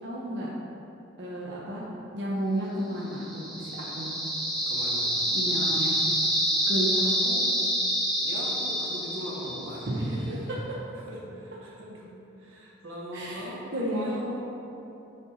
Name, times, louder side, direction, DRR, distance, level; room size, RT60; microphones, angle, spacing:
voice 1, 0.0-0.5 1.2-1.8 2.1-4.2 5.3-6.0 6.7-7.4 9.9-10.2 13.1-14.3, equal, 60° right, -6 dB, 0.7 m, -32 dB
sound 1, 3.1-10.0, equal, ahead, 0.8 m, -27 dB
voice 2, 4.7-5.2 8.2-10.5 11.0-14.3, equal, 80° right, -3 dB, 1.2 m, -40 dB
7.1 x 4.2 x 4.2 m, 3.0 s
head